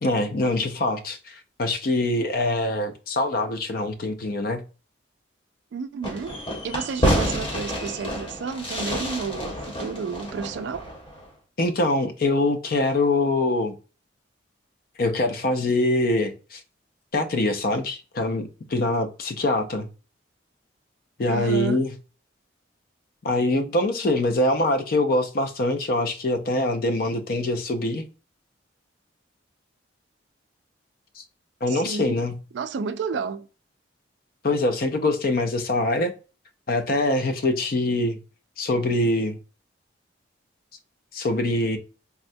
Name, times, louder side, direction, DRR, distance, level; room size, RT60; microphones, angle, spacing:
voice 1, 0.0-4.6 11.6-13.7 15.0-16.6 17.1-19.9 21.2-21.9 23.2-28.1 31.2-31.3 31.6-32.3 34.4-36.1 36.7-38.2 38.6-39.4 41.1-41.8, left 2 dB, 50° left, 0.4 m, -24 dB
voice 2, 5.7-6.4 6.6-10.9 21.3-21.8 31.7-32.2 32.5-33.5, right 5 dB, 65° right, 0.3 m, -31 dB
Fireworks, 6.0-11.3, equal, 25° left, 0.9 m, -28 dB
3.6 x 2.1 x 2.6 m
head